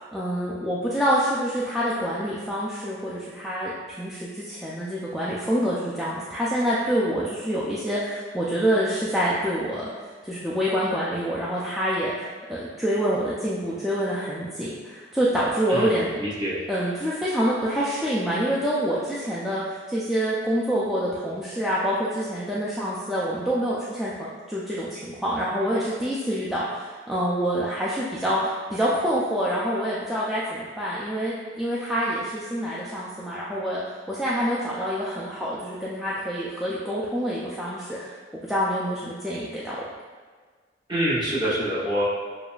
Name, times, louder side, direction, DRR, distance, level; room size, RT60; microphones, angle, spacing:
voice 1, 0.1-9.9 10.2-16.2 16.7-24.1 24.5-33.8 34.1-37.9 38.4-39.8, equal, ahead, -8 dB, 0.4 m, -26 dB
voice 2, 16.2-16.6 40.9-42.0, right 1 dB, 25° right, -9 dB, 1.1 m, -25 dB
6.8 x 2.4 x 2.3 m, 1.5 s
head